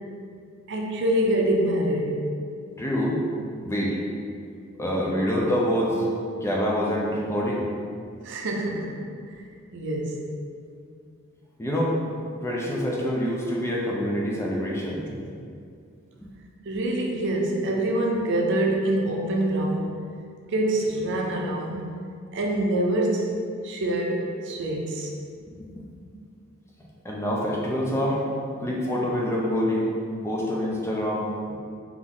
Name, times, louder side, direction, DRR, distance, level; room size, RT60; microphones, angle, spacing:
voice 1, 0.7-2.3 8.2-8.9 9.7-10.3 15.1-15.2 16.6-19.9 20.5-21.9 22.3-23.4 23.6-25.1, right 1 dB, 60° right, 0 dB, 0.6 m, -25 dB
voice 2, 2.8-3.2 3.6-4.0 4.8-6.1 6.4-7.7 11.6-12.0 12.4-15.0 16.2-16.3 25.5-25.9 27.0-28.2 28.6-29.9 30.2-31.5, equal, 15° left, -4 dB, 0.5 m, -26 dB
3.8 x 3.0 x 3.6 m, 2.3 s
head